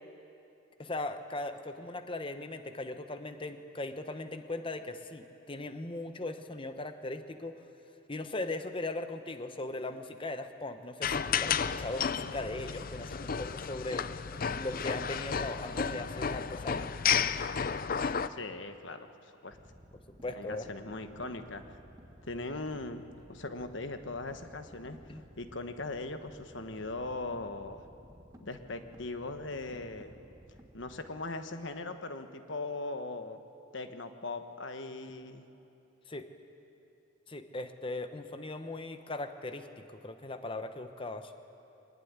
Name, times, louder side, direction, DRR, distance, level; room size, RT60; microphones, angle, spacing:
voice 1, 0.8-7.6 8.1-14.1 14.5-16.9 20.1-20.7 25.1-25.2 36.1-36.3 37.3-41.3, left 2 dB, 25° left, 8 dB, 0.9 m, -39 dB
sound 1, 11.0-18.3, left 7 dB, 45° left, 0.5 m, -32 dB
voice 2, 18.3-19.6 20.3-21.8 22.3-27.8 28.4-30.1 30.7-33.4 33.7-35.4, left 2 dB, 65° left, 8 dB, 1.3 m, -40 dB
sound 2, 19.5-31.2, equal, 15° right, 1.5 m, -55 dB
23.0 x 19.5 x 9.6 m, 2.8 s
head